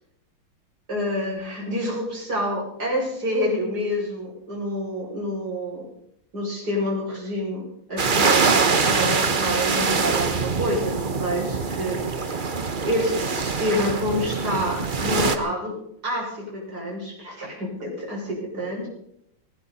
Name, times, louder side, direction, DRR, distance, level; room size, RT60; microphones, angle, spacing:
voice 1, 0.9-5.9 6.3-7.6 7.9-12.0 12.8-15.8 16.0-18.9, equal, 50° right, -3 dB, 7.3 m, -28 dB
sound 1, 8.0-15.4, right 4 dB, 35° right, 0.9 m, -23 dB
19.5 x 17.5 x 4.2 m, 0.72 s
omnidirectional pair, 2.2 m